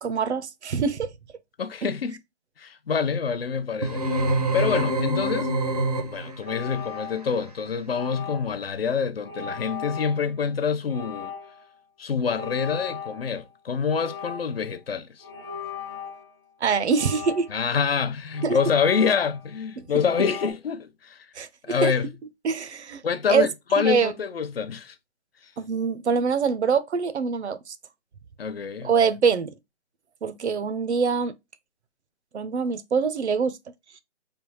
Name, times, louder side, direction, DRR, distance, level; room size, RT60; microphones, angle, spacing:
voice 1, 0.0-1.1 16.6-17.5 18.4-18.6 21.4-21.9 22.4-23.0 23.3-23.5 23.8-24.1 25.6-27.8 28.8-29.5 30.2-31.3 32.3-33.5, right 5 dB, 80° right, 0.6 m, -24 dB
voice 2, 1.6-2.2 2.6-5.5 6.0-11.3 12.0-15.2 17.5-21.3 21.7-22.1 23.0-25.0 28.4-28.9, left 6 dB, 60° left, 0.5 m, -26 dB
sound 1, 3.8-6.4, right 1 dB, 35° right, 0.5 m, -25 dB
sound 2, 6.4-7.5 7.9-8.7 9.2-10.3 10.9-11.7 12.2-13.5 13.9-14.7 15.2-16.3 16.9-17.8 18.3-19.6 20.0-20.5, left 6 dB, 20° left, 0.7 m, -38 dB
3.4 x 2.2 x 3.0 m
hypercardioid pair, 175°, 34 cm